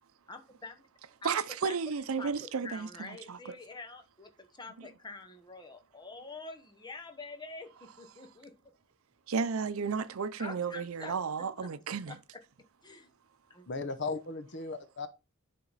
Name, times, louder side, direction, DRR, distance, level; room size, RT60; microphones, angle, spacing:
voice 1, 0.3-0.8 1.2-1.4 1.6-1.8 2.2-2.3 2.6-7.7 8.0-8.5 10.4-11.1 12.1-12.4 12.8-13.1 13.5-13.7, left 3 dB, 20° left, 0.9 m, -46 dB
voice 2, 1.2-3.4 9.3-12.2, right 5 dB, 80° right, 0.6 m, -33 dB
voice 3, 13.7-15.1, left 3 dB, 55° left, 0.9 m, -36 dB
10.0 x 3.8 x 4.0 m
head